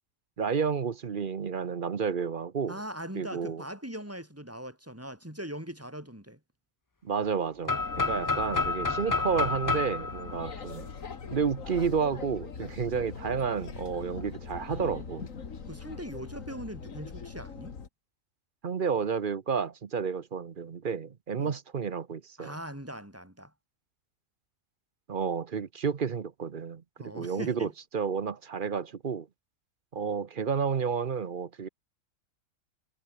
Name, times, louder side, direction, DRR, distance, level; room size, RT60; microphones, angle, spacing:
voice 1, 0.4-2.8 3.1-3.6 7.0-10.9 11.3-15.3 18.6-22.6 25.1-29.3 29.9-31.7, right 6 dB, 45° right, 0.9 m, -31 dB
voice 2, 2.7-6.4 15.7-17.8 21.4-21.6 22.4-23.5 27.0-27.7, equal, 10° right, 4.5 m, -41 dB
sound 1, 7.7-11.5, left 3 dB, 20° left, 0.5 m, -30 dB
sound 2, 7.8-17.9, left 5 dB, 85° left, 2.2 m, -42 dB
omnidirectional pair, 1.3 m